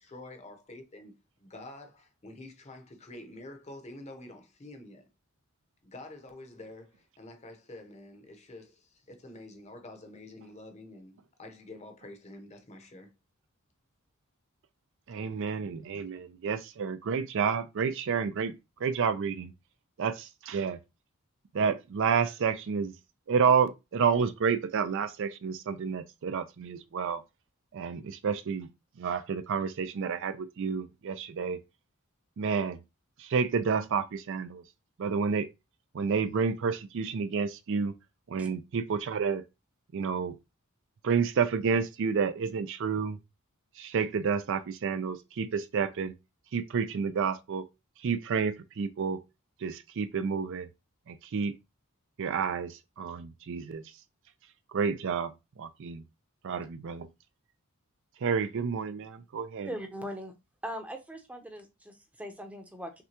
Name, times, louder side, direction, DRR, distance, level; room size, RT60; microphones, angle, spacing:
voice 1, 0.0-5.0 5.8-13.1, left 2 dB, 30° left, 0.8 m, -48 dB
voice 2, 15.1-18.5 18.8-19.5 20.0-20.8 21.5-22.9 23.3-27.2 27.7-28.7 29.0-31.6 32.4-32.8 33.2-34.6 35.0-35.5 35.9-37.9 38.3-39.4 39.9-40.4 41.0-43.2 43.8-46.1 46.5-47.6 48.0-49.2 49.6-50.7 51.1-51.5 52.2-53.9 54.7-56.0 56.4-57.1 58.2-59.7, right 6 dB, 60° right, 0.4 m, -30 dB
voice 3, 59.6-60.3 60.6-63.0, equal, 5° right, 0.7 m, -40 dB
5.9 x 2.2 x 2.9 m
head